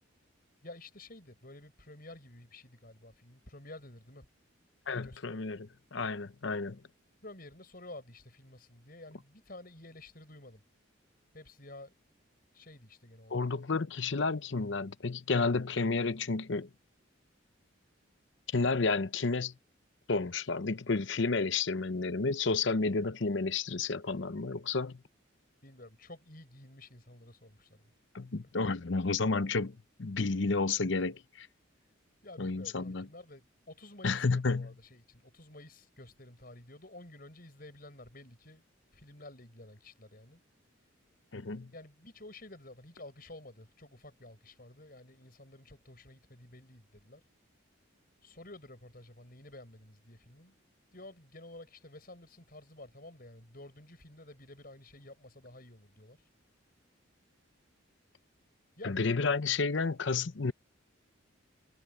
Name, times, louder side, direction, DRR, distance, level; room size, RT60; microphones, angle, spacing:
voice 1, 0.6-4.3 4.9-5.5 7.2-10.6 11.3-11.9 12.5-13.5 25.6-27.9 32.2-38.6 38.9-40.4 41.7-47.2 48.2-50.5 50.9-56.2 58.8-59.3, left 1 dB, 45° left, 6.8 m, -51 dB
voice 2, 4.9-6.8 13.3-16.7 18.5-19.5 20.1-25.0 28.1-31.5 32.4-33.0 34.0-34.7 41.3-41.7 58.8-60.5, left 4 dB, 65° left, 0.7 m, -31 dB
head